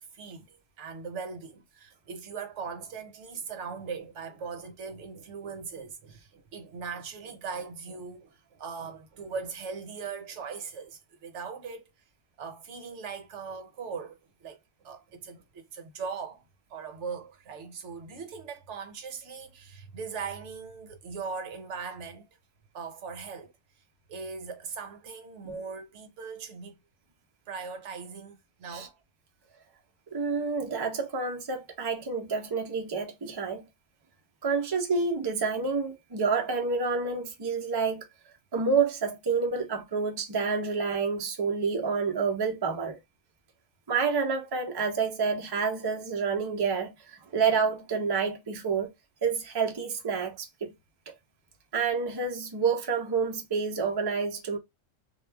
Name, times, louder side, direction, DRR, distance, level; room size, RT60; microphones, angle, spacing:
voice 1, 0.0-11.8 12.4-14.6 14.8-16.4 16.7-22.3 22.7-23.5 24.1-26.8 27.5-29.0, right 5 dB, 65° right, 1.0 m, -40 dB
voice 2, 30.1-33.7 34.4-38.0 38.5-43.0 43.9-48.9 49.2-50.7 51.7-54.6, right 5 dB, 40° right, 0.3 m, -28 dB
2.3 x 2.1 x 3.2 m
omnidirectional pair, 1.3 m